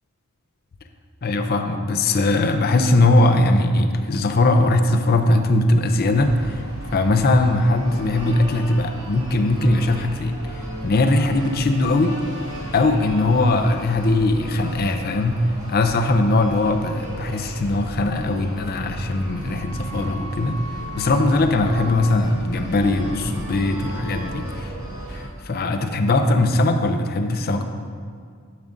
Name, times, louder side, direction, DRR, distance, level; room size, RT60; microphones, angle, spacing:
voice 1, 1.2-6.6 6.9-10.3 10.8-12.2 12.7-15.4 15.7-20.6 21.0-24.7 25.1-27.6, left 2 dB, 45° left, 6 dB, 0.5 m, -20 dB
sound 1, 6.1-25.2, equal, 35° right, 1.7 m, -35 dB
10.5 x 6.8 x 2.6 m, 2.1 s
head